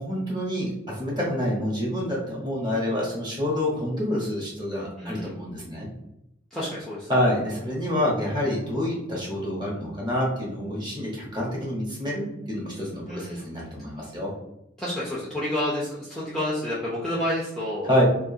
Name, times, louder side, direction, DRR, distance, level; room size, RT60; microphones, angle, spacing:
voice 1, 0.0-5.9 7.1-14.3 17.8-18.0, left 1 dB, 25° right, -4 dB, 0.9 m, -27 dB
voice 2, 5.0-5.3 6.5-7.1 13.1-13.5 14.8-17.9, left 1 dB, 5° left, -8 dB, 0.5 m, -29 dB
2.4 x 2.4 x 2.6 m, 0.85 s
head